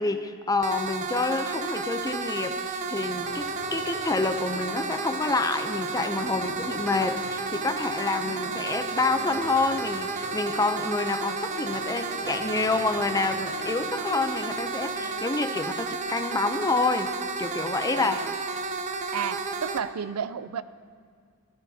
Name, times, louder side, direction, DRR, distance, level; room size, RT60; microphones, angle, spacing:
voice 1, 0.0-17.1 17.4-18.2, left 3 dB, 15° left, 8 dB, 0.5 m, -28 dB
sound 1, 0.6-19.8, right 4 dB, 35° right, 0.6 m, -32 dB
sound 2, 3.2-15.2, left 1 dB, 70° left, 1.4 m, -43 dB
voice 2, 8.2-8.6 17.9-18.3 19.1-20.6, right 7 dB, 80° right, 15 dB, 0.5 m, -33 dB
17.0 x 16.0 x 2.8 m, 2.1 s
head